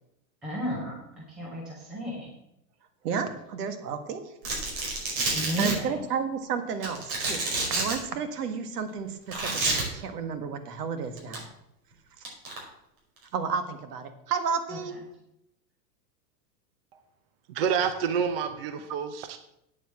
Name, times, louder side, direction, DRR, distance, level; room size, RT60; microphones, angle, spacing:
voice 1, 0.4-0.9 1.4-2.3 5.3-5.9, equal, ahead, -5 dB, 0.4 m, -33 dB
voice 2, 3.0-4.3 5.3-7.4 7.7-11.4 13.3-15.0, right 6 dB, 70° right, 9 dB, 1.8 m, -32 dB
Domestic sounds home sounds, 4.4-5.7 6.8-7.9 9.3-9.8 11.2-11.4 12.2-12.6, right 3 dB, 55° right, 5.1 m, -28 dB
voice 3, 17.5-19.4, right 7 dB, 35° right, 8 dB, 0.7 m, -28 dB
8.7 x 7.8 x 7.4 m, 0.81 s
supercardioid pair, 180°, 49 cm